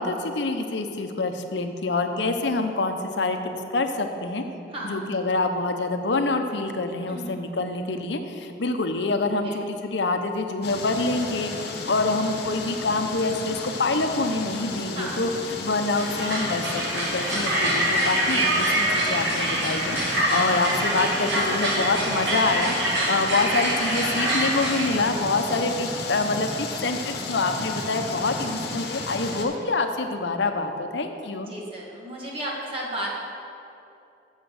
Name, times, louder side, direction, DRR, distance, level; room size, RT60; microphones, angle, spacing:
voice 1, 0.0-4.4 4.8-11.5 11.9-15.3 15.6-31.5, left 3 dB, 75° left, 6 dB, 0.8 m, -26 dB
voice 2, 4.7-5.0 7.1-7.5 9.4-9.6 14.9-15.2 28.5-28.8 31.5-33.1, right 1 dB, 30° right, -4 dB, 1.6 m, -34 dB
sound 1, 10.6-29.4, left 3 dB, 60° left, 1.2 m, -33 dB
sound 2, 15.9-24.9, right 1 dB, 85° right, 2.0 m, -25 dB
8.1 x 7.3 x 6.4 m, 2.7 s
head